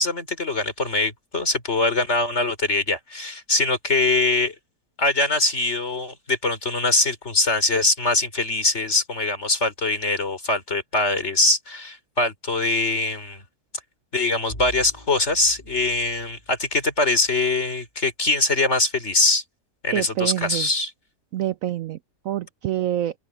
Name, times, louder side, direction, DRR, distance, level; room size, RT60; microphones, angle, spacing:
voice 1, 0.0-4.5 5.0-13.4 14.1-19.4 19.8-20.9, left 2 dB, 40° left, 4.0 m, -22 dB
Bowed string instrument, 14.5-17.6, left 1 dB, 25° left, 4.1 m, -44 dB
voice 2, 19.9-20.7 21.3-22.0 22.2-23.1, right 12 dB, 65° right, 0.8 m, -26 dB
open air
omnidirectional pair, 1.7 m